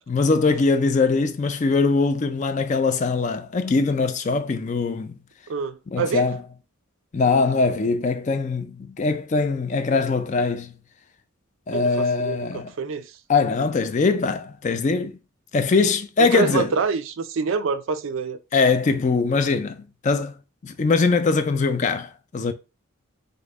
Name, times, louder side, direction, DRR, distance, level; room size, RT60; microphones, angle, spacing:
voice 1, 0.1-5.1 5.9-6.4 7.1-10.7 11.7-12.7 13.3-15.2 15.5-16.7 18.5-20.3 20.6-22.5, left 4 dB, 35° left, 0.3 m, -22 dB
voice 2, 5.5-6.2 11.7-13.1 16.2-18.4, right 5 dB, 65° right, 0.4 m, -26 dB
5.3 x 2.1 x 3.5 m
head